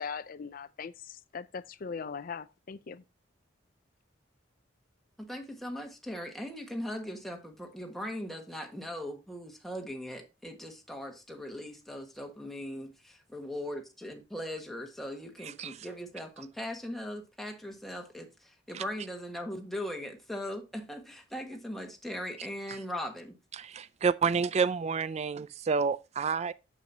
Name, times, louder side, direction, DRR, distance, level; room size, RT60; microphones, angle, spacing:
voice 1, 0.0-3.0, left 5 dB, 50° left, 0.4 m, -40 dB
voice 2, 5.2-12.9 13.3-23.3, equal, ahead, 1.5 m, -39 dB
voice 3, 15.4-15.8 18.7-18.8 23.6-26.5, right 5 dB, 35° right, 0.3 m, -29 dB
8.9 x 7.4 x 2.7 m
head